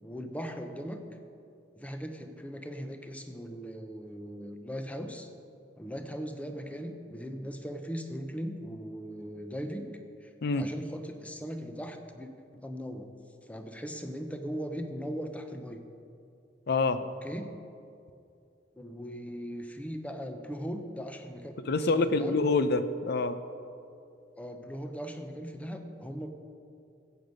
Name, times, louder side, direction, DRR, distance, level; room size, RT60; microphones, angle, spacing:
voice 1, 0.0-1.0 1.8-5.3 5.8-9.9 10.2-13.1 13.5-15.9 17.2-17.5 18.8-22.4 24.4-26.3, equal, 10° left, 6 dB, 0.8 m, -39 dB
voice 2, 16.7-17.0 21.7-23.4, left 3 dB, 60° left, 11 dB, 0.6 m, -26 dB
15.0 x 8.0 x 5.2 m, 2.6 s
head